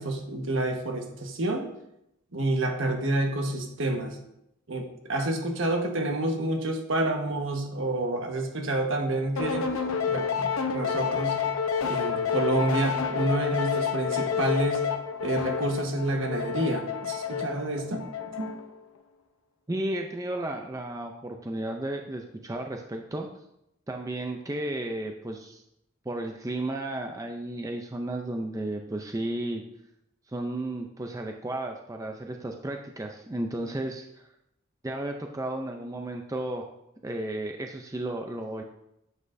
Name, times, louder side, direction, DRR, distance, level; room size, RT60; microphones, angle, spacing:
voice 1, 0.0-1.7 2.3-4.2 4.7-9.7 10.1-11.5 11.9-14.8 15.2-18.5, right 2 dB, 65° right, 3 dB, 1.3 m, -29 dB
sound 1, 9.4-18.8, left 7 dB, 85° left, 0.8 m, -29 dB
voice 2, 19.7-23.3 23.9-25.6 26.1-29.6 30.3-34.3 34.8-36.6 37.0-38.6, right 1 dB, 15° right, 3 dB, 0.5 m, -33 dB
9.5 x 7.6 x 2.6 m, 0.82 s
head